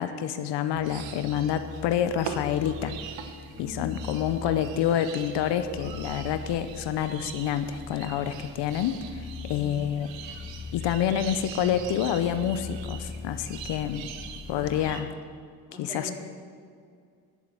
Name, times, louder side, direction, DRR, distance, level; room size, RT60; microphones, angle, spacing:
voice 1, 0.0-2.9 3.6-10.1 10.7-14.1 14.5-15.1 15.8-16.1, left 9 dB, 70° left, 10 dB, 0.7 m, -28 dB
sound 1, 0.7-15.0, left 4 dB, 10° left, 0.6 m, -42 dB
sound 2, 0.8-15.0, right 8 dB, 85° right, 1.1 m, -43 dB
voice 2, 3.5-3.9 9.5-10.5 14.6-15.1 15.7-16.1, left 2 dB, 20° right, -3 dB, 3.8 m, -43 dB
10.5 x 7.7 x 7.9 m, 2.1 s
supercardioid pair, 80°, 43 cm